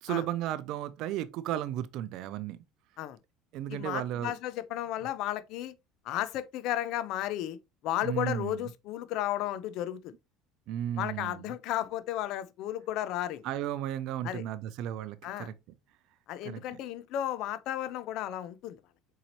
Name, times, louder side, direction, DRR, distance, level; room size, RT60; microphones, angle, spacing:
voice 1, 0.0-2.6 3.5-4.3 8.0-8.7 10.7-11.5 13.4-15.5 16.4-16.8, right 11 dB, 65° right, 0.4 m, -34 dB
voice 2, 3.7-5.7 6.1-7.6 7.8-10.1 11.0-13.4 14.2-14.4 15.2-15.5 16.3-18.8, left 13 dB, 65° left, 0.4 m, -33 dB
4.0 x 2.8 x 2.8 m
supercardioid pair, 90°, 0 cm